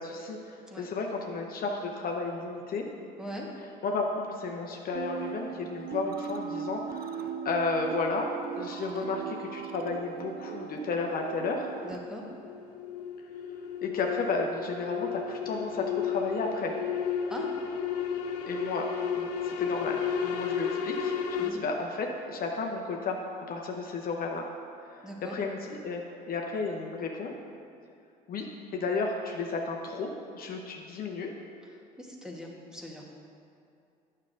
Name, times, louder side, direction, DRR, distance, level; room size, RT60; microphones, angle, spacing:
voice 1, 0.0-2.8 3.8-8.3 8.6-11.7 13.8-16.7 18.5-18.9 19.1-23.2 23.5-24.5 24.9-27.3 28.3-28.5 28.7-31.3, left 3 dB, 45° left, 1 dB, 0.7 m, -33 dB
sound 1, 5.0-12.0, right 7 dB, 50° right, 0.4 m, -39 dB
sound 2, 11.0-21.5, left 7 dB, 85° left, 0.5 m, -33 dB
voice 2, 11.8-12.2 17.3-17.5 21.4-21.6 25.0-25.4 32.0-33.0, equal, 5° right, -1 dB, 1.2 m, -41 dB
9.3 x 6.4 x 2.6 m, 2.5 s
hypercardioid pair, 65°, 20 cm